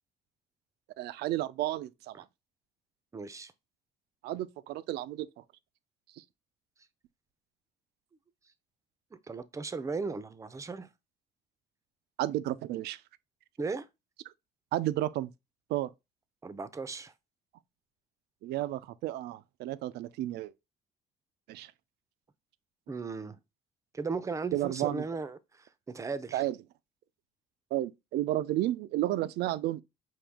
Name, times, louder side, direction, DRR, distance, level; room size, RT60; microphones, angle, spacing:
voice 1, 1.0-2.2 4.2-5.4 6.2-6.3 12.2-13.0 14.7-15.3 15.7-15.9 18.4-20.5 21.5-21.7 24.5-25.0 26.3-26.6 27.7-29.8, right 15 dB, 75° right, 0.4 m, -32 dB
voice 2, 3.1-3.5 9.3-10.9 13.6-13.9 16.4-17.1 22.9-23.4 23.9-25.4 25.9-26.4, right 4 dB, 20° right, 0.5 m, -36 dB
5.3 x 2.8 x 3.4 m
cardioid pair, 110°, 17 cm